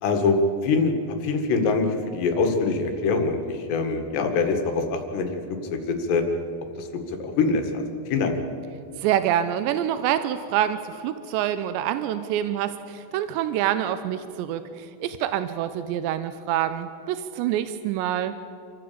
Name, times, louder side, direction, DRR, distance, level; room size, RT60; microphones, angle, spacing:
voice 1, 0.0-5.4 5.7-6.2 6.8-8.4, left 4 dB, 75° left, 5 dB, 4.0 m, -24 dB
voice 2, 9.0-18.4, right 11 dB, 90° right, 11 dB, 3.0 m, -26 dB
27.5 x 14.5 x 8.6 m, 2.5 s
omnidirectional pair, 5.0 m